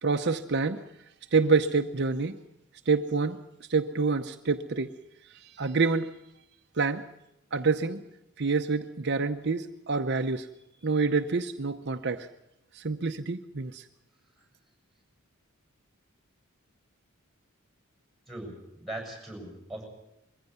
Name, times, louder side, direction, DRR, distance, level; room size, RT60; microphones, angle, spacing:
voice 1, 0.0-0.8 1.3-2.4 2.9-3.4 3.7-4.9 5.3-6.1 6.7-7.0 7.5-8.0 8.4-10.5 10.8-12.3 12.7-13.9, right 4 dB, 55° right, 7 dB, 0.8 m, -27 dB
voice 2, 18.3-19.8, right 1 dB, ahead, 1 dB, 7.7 m, -40 dB
22.5 x 15.5 x 9.4 m, 0.87 s
head